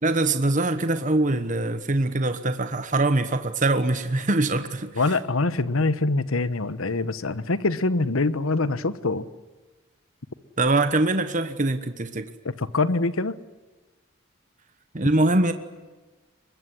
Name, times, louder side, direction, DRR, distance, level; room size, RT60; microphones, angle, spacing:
voice 1, 0.0-5.2 10.6-12.3 14.9-15.5, right 2 dB, 35° right, 9 dB, 1.2 m, -23 dB
voice 2, 5.0-9.3 12.6-13.4, left 3 dB, 75° left, 15 dB, 1.2 m, -24 dB
23.5 x 21.0 x 9.9 m, 1.3 s
head